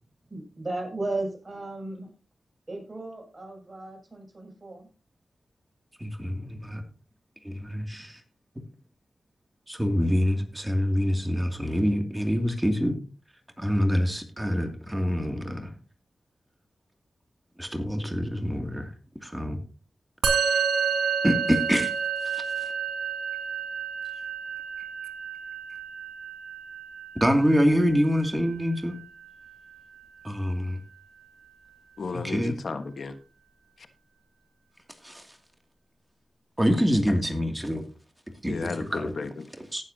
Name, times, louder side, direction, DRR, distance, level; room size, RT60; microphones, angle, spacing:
voice 1, 0.3-2.1 2.7-4.9, right 2 dB, 35° right, 0 dB, 7.1 m, -35 dB
voice 2, 6.0-6.8 7.4-8.2 9.7-13.0 13.6-15.7 17.6-18.9 19.2-19.6 20.3-20.6 21.2-21.9 22.3-22.4 27.2-29.0 30.2-30.8 32.2-32.5 35.0-35.2 36.6-37.8 38.4-38.5 38.9-39.1 39.7-39.8, equal, 10° right, 4 dB, 2.5 m, -25 dB
Musical instrument, 20.2-29.8, right 6 dB, 85° right, 2.2 m, -30 dB
voice 3, 32.0-33.2 33.8-33.9 37.1-37.2 38.5-39.5, left 4 dB, 70° left, 8 dB, 1.4 m, -33 dB
18.5 x 7.4 x 2.8 m, 0.35 s
cardioid pair, 45°, 0 cm